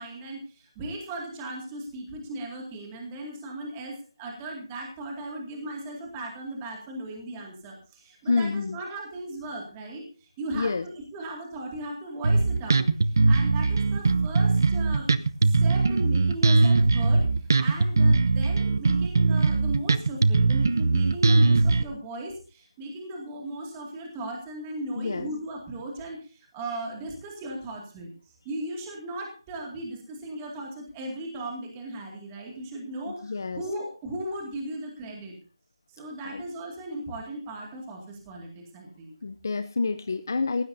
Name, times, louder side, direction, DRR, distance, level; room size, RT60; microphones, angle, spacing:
voice 1, 0.0-15.1 15.4-35.3 35.9-39.1, right 1 dB, 10° right, 0 dB, 2.3 m, -37 dB
voice 2, 8.2-8.8 10.5-10.8 25.0-25.3 33.1-33.6 36.2-36.4 39.2-40.6, left 4 dB, 35° left, 10 dB, 0.7 m, -28 dB
Bass guitar, 12.2-21.8, right 3 dB, 40° right, 0.8 m, -21 dB
19.5 x 16.0 x 2.7 m, 0.37 s
figure-of-eight pair, 175°, 3 cm